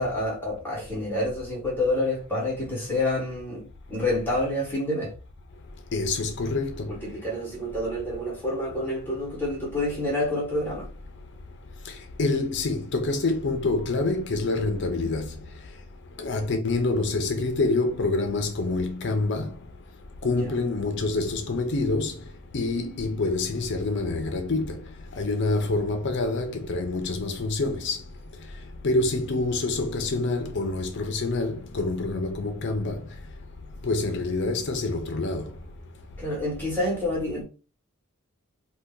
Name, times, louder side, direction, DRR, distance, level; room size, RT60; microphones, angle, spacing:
voice 1, 0.0-5.1 6.9-10.9 20.4-20.5 36.2-37.4, left 1 dB, 10° left, 1.0 m, -28 dB
voice 2, 5.9-6.9 12.2-15.3 16.2-19.5 20.2-22.1 22.5-24.8 25.2-28.0 28.8-33.0 33.8-35.5, left 3 dB, 55° left, 0.5 m, -26 dB
2.8 x 2.2 x 3.5 m
head